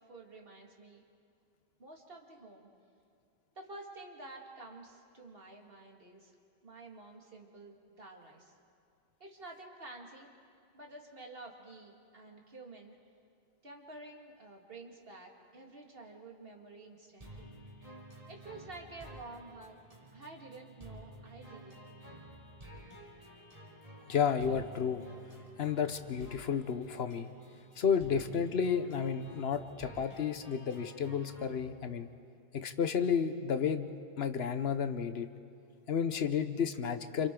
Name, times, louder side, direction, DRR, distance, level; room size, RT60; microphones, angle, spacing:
voice 1, 0.1-1.0 1.8-2.7 3.6-6.3 6.6-8.5 9.2-10.3 10.7-12.9 13.6-17.5 18.3-19.8 20.1-21.8, right 2 dB, 65° right, 0 dB, 2.4 m, -50 dB
sound 1, 17.2-31.6, right 1 dB, 35° right, 3.0 m, -52 dB
voice 2, 24.1-25.0 25.6-27.3 27.8-32.1 32.5-33.9 34.2-35.3 35.9-37.3, left 7 dB, 75° left, 9 dB, 1.1 m, -32 dB
29.0 x 27.5 x 3.8 m, 2.4 s
omnidirectional pair, 1.1 m